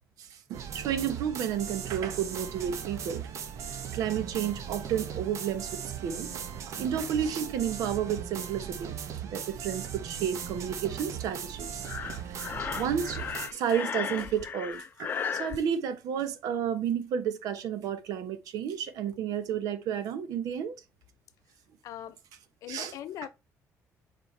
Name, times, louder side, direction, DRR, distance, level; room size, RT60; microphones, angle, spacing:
voice 1, 0.2-3.3 3.6-3.7 3.9-6.3 6.8-9.0 9.3-11.8 12.2-12.4 12.7-20.7 22.7-22.9, right 8 dB, 80° right, 1.0 m, -31 dB
sound 1, 0.5-13.5, right 8 dB, 55° right, 0.9 m, -38 dB
Breathing, 11.8-15.6, left 7 dB, 35° left, 0.5 m, -35 dB
voice 2, 21.8-22.2 22.6-23.3, left 11 dB, 65° left, 0.7 m, -40 dB
7.2 x 4.4 x 3.3 m
cardioid pair, 155°, 6 cm